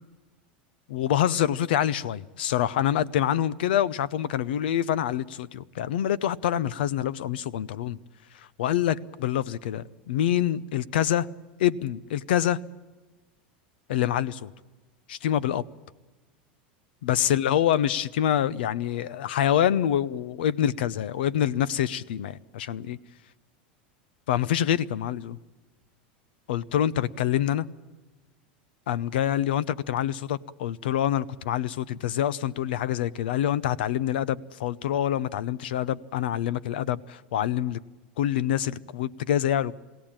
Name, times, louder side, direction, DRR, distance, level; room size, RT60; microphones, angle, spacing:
voice 1, 0.9-8.0 8.6-11.3 11.6-12.6 13.9-14.5 15.1-15.6 17.0-23.0 24.3-25.4 26.5-27.7 28.9-37.8 38.2-39.7, left 11 dB, 85° left, 21 dB, 0.7 m, -26 dB
22.5 x 17.0 x 8.8 m, 1.2 s
supercardioid pair, 130°, 5 cm